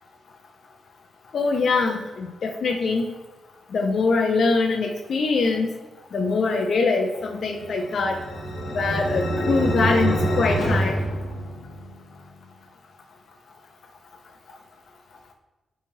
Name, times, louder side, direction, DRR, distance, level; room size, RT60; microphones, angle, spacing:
voice 1, 1.3-3.1 3.7-5.7 6.1-8.2 8.7-11.0, left 4 dB, 65° left, 3 dB, 0.3 m, -23 dB
sound 1, 7.4-12.0, right 1 dB, 85° left, 0.7 m, -26 dB
3.7 x 2.9 x 2.6 m, 1.2 s
cardioid pair, 75°, 0 cm